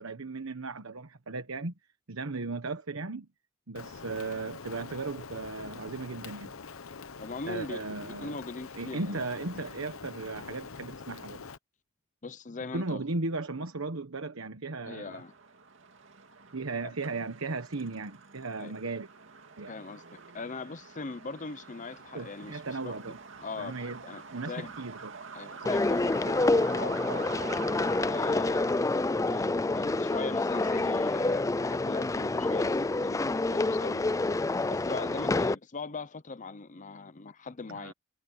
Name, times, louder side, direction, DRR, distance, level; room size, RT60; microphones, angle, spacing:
voice 1, 0.0-1.7 2.1-3.3 3.7-6.5 7.5-8.4 8.7-11.4 12.7-15.2 16.5-19.1 19.6-19.7 22.1-23.2 23.6-24.0 24.3-25.2 37.7-37.9, right 3 dB, 80° right, 1.2 m, -36 dB
Rain, 3.7-11.6, left 5 dB, 80° left, 0.9 m, -45 dB
voice 2, 7.2-9.2 12.2-13.0 14.8-15.3 16.8-16.9 18.6-18.7 19.7-20.0 20.3-22.9 23.4-24.7 25.3-27.2 28.0-28.7 29.3-34.1 34.7-37.9, left 4 dB, 35° left, 0.7 m, -40 dB
Truck, 15.1-35.1, right 5 dB, 60° right, 2.5 m, -47 dB
sound 1, 25.7-35.6, left 2 dB, 15° left, 0.4 m, -28 dB
head